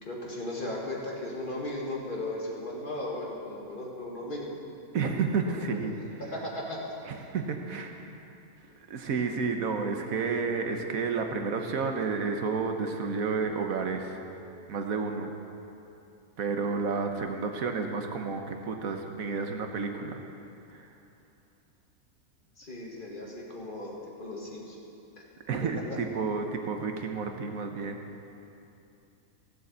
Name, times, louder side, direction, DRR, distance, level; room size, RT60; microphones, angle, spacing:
voice 1, 0.0-4.6 5.5-6.9 22.6-24.8 25.2-25.3, left 1 dB, 35° left, -3 dB, 2.1 m, -37 dB
voice 2, 4.9-6.2 7.1-8.1 8.9-14.2 14.7-15.3 16.4-20.2 20.7-20.9 25.5-28.0, right 4 dB, 70° right, 4 dB, 1.4 m, -31 dB
14.5 x 7.7 x 8.1 m, 2.8 s
omnidirectional pair, 1.5 m